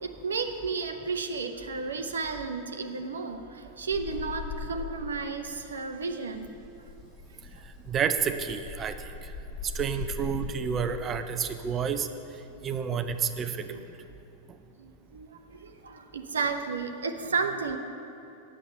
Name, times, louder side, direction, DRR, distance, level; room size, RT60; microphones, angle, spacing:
voice 1, 0.0-6.6 7.6-7.7 11.4-11.5 13.7-13.8 14.8-17.8, right 4 dB, 70° right, 7 dB, 0.6 m, -33 dB
sound 1, 3.9-5.3 5.6-11.0 12.8-13.2, left 4 dB, 35° left, 1.5 m, -40 dB
voice 2, 7.9-9.0 9.7-12.1 12.6-13.7, right 7 dB, 25° right, 9 dB, 0.6 m, -29 dB
9.3 x 7.6 x 6.7 m, 2.8 s
figure-of-eight pair, 90°, 0 cm